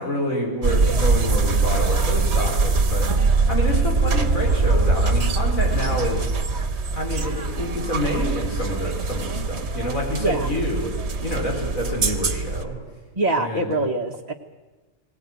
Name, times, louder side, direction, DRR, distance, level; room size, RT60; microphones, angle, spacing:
voice 1, 0.0-3.1 3.5-6.3 6.9-10.9 11.2-12.8 13.4-13.7, equal, 85° left, 0 dB, 5.6 m, -28 dB
sound 1, 0.6-12.6, right 3 dB, 55° right, 1.6 m, -22 dB
voice 2, 13.2-14.3, right 2 dB, 30° right, 0 dB, 1.3 m, -24 dB
21.5 x 18.0 x 9.4 m, 1.2 s
omnidirectional pair, 1.4 m